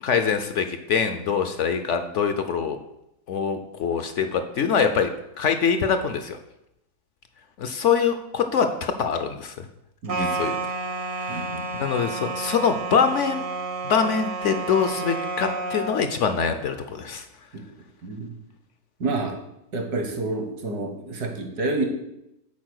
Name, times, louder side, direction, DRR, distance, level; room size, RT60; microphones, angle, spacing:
voice 1, 0.0-2.8 3.3-5.1 5.4-6.4 7.6-9.7 10.2-10.7 11.2-11.4 11.8-13.4 13.8-17.2, left 6 dB, 65° left, 8 dB, 0.8 m, -24 dB
voice 2, 10.0-10.4 11.3-11.6 18.0-18.3 19.0-19.4 19.7-21.9, right 3 dB, 75° right, 4 dB, 1.8 m, -28 dB
sound 1, 10.1-16.1, right 3 dB, 45° right, 0.7 m, -30 dB
8.6 x 4.4 x 6.3 m, 0.86 s
omnidirectional pair, 1.7 m